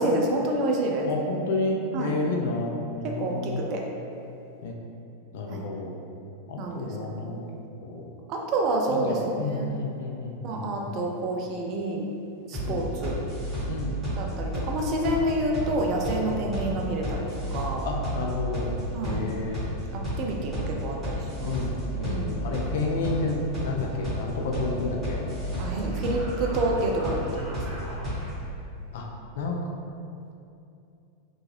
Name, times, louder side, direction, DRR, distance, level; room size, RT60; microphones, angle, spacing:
voice 1, 0.0-1.1 1.9-2.2 3.0-3.8 5.5-5.7 6.6-7.6 8.3-9.7 10.4-12.1 12.5-13.2 14.2-17.9 18.9-19.2 19.9-21.6 22.0-22.5 25.6-27.6, right 1 dB, 40° right, 0 dB, 0.4 m, -28 dB
voice 2, 1.0-3.6 4.6-4.7 5.3-6.0 6.5-7.5 7.8-8.1 8.9-11.0 12.6-12.9 13.7-13.9 15.2-15.8 16.3-16.5 17.8-18.7 19.0-19.7 21.4-25.2 28.9-29.1 29.3-29.6, left 3 dB, 55° left, 0 dB, 0.3 m, -31 dB
sound 1, 12.5-28.5, equal, 5° right, 1.4 m, -32 dB
2.6 x 2.3 x 3.0 m, 2.7 s
figure-of-eight pair, 90°, 0 cm